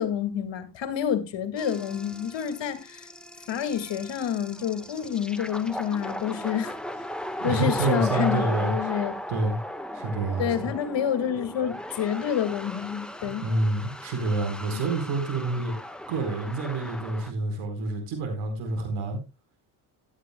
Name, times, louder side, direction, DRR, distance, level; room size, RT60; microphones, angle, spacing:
voice 1, 0.0-3.1 3.5-6.8 7.4-9.1 10.4-13.5 14.7-14.8, left 9 dB, 60° left, 2.0 m, -28 dB
sound 1, 1.6-17.3, left 1 dB, ahead, 1.3 m, -36 dB
voice 2, 7.4-8.7 9.3-9.6 9.9-10.7 13.2-15.7 16.1-19.2, right 2 dB, 80° right, 4.5 m, -28 dB
15.0 x 11.5 x 2.2 m
supercardioid pair, 75°, 49 cm